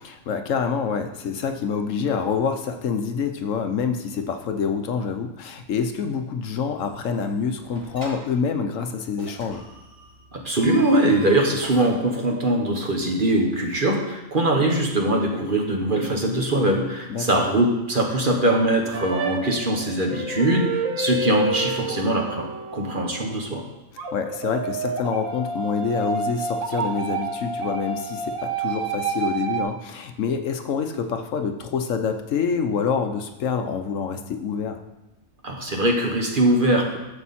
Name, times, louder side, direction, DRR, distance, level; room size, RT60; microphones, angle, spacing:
voice 1, 0.0-9.6 17.1-17.4 24.1-34.8, left 6 dB, 70° left, 7 dB, 1.1 m, -26 dB
sound 1, 6.8-7.3 7.6-8.2 9.2-11.9, equal, 55° right, 2.4 m, -42 dB
voice 2, 10.3-23.6 35.4-37.0, right 1 dB, 40° right, 1 dB, 1.4 m, -22 dB
sound 2, 18.9-23.2 24.0-29.6, right 3 dB, 80° right, 1.4 m, -29 dB
11.5 x 7.2 x 4.2 m, 1.0 s
omnidirectional pair, 1.4 m